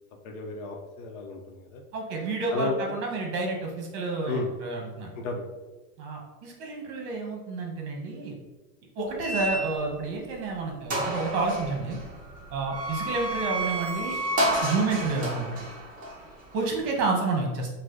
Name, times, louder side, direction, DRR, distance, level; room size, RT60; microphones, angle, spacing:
voice 1, 0.2-1.8 2.5-2.8 4.2-4.5 5.1-5.5, left 3 dB, 50° left, 3 dB, 0.8 m, -33 dB
voice 2, 1.9-5.1 6.0-8.4 9.0-12.0 12.5-14.2 14.6-15.6 16.5-17.7, right 3 dB, 45° right, 1 dB, 1.2 m, -30 dB
sound 1, 9.2-10.1 10.5-10.6 10.9-17.0, right 1 dB, 15° right, 0.8 m, -31 dB
4.8 x 2.2 x 3.8 m, 1.2 s
supercardioid pair, 135°, 47 cm